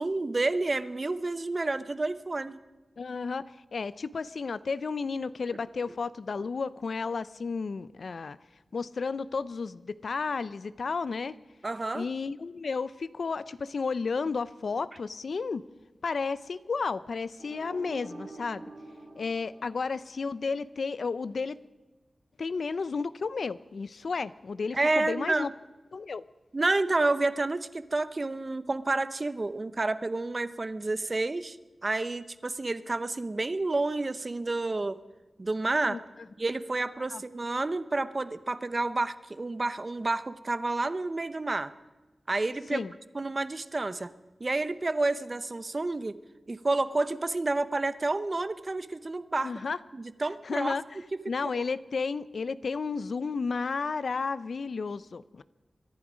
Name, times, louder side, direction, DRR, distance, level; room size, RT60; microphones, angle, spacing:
voice 1, 0.0-2.6 11.6-12.1 24.7-25.5 26.5-31.6 31.8-35.0 35.4-36.0 36.4-41.7 42.3-42.8 43.1-44.1 44.4-46.2 46.5-49.5 49.9-50.8 51.4-51.6, right 2 dB, 40° right, 13 dB, 0.8 m, -29 dB
voice 2, 3.0-3.4 3.7-8.4 8.7-11.4 11.9-15.6 16.0-18.6 19.2-21.6 22.4-25.5 25.9-26.2 35.9-36.0 37.1-37.2 42.7-42.9 49.4-49.8 50.4-50.8 51.3-55.4, left 4 dB, 75° left, 16 dB, 0.5 m, -32 dB
sound 1, 17.4-20.4, right 2 dB, 80° right, 4.3 m, -46 dB
23.5 x 11.0 x 5.1 m, 1.1 s
cardioid pair, 60°, 0 cm